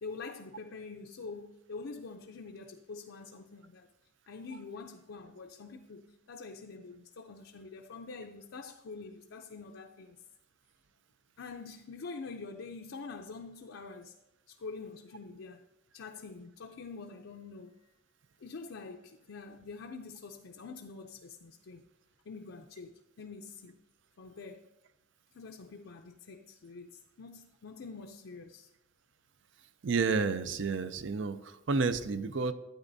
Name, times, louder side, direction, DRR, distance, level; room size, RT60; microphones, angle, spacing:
voice 1, 0.0-3.9 4.3-10.2 11.4-14.1 14.5-15.6 15.9-17.7 18.4-21.8 22.3-23.8 24.2-24.7 25.3-28.7, left 4 dB, 80° left, 0.5 m, -46 dB
voice 2, 29.8-32.5, right 4 dB, 70° right, 0.5 m, -30 dB
11.5 x 9.1 x 2.7 m
head